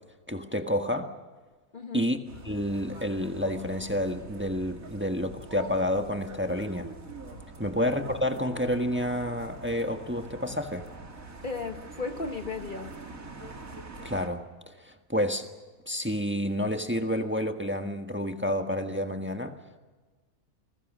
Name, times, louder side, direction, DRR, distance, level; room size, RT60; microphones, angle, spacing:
voice 1, 0.3-1.1 1.9-6.9 7.6-10.8 14.0-15.5 15.9-19.5, left 1 dB, 10° right, 1.4 m, -29 dB
voice 2, 1.7-2.0 7.6-7.7 11.4-13.0, left 4 dB, 40° left, 1.2 m, -35 dB
sound 1, 2.3-14.3, right 2 dB, 80° right, 2.8 m, -44 dB
28.0 x 20.5 x 6.3 m
omnidirectional pair, 1.4 m